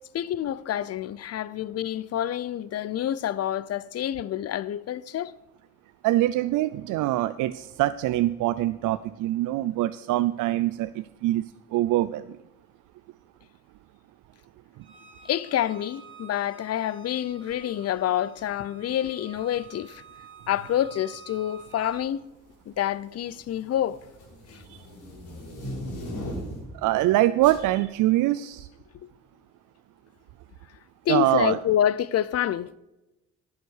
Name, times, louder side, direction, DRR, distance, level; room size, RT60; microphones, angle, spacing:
voice 1, 0.1-5.3 15.2-20.0 20.5-22.2 22.7-24.0 24.5-24.6 31.1-32.8, left 11 dB, 55° left, 0.6 m, -27 dB
voice 2, 6.0-12.4 24.7-24.8 26.8-28.7 31.1-31.6, right 15 dB, 85° right, 0.4 m, -24 dB
Bowed string instrument, 14.8-22.1, right 7 dB, 40° right, 1.6 m, -50 dB
sound 1, 20.5-20.8 21.7-22.2 22.5-26.8 27.4-27.6, equal, 85° left, 4.6 m, -38 dB
11.0 x 7.2 x 6.4 m
cardioid pair, 90°, 30 cm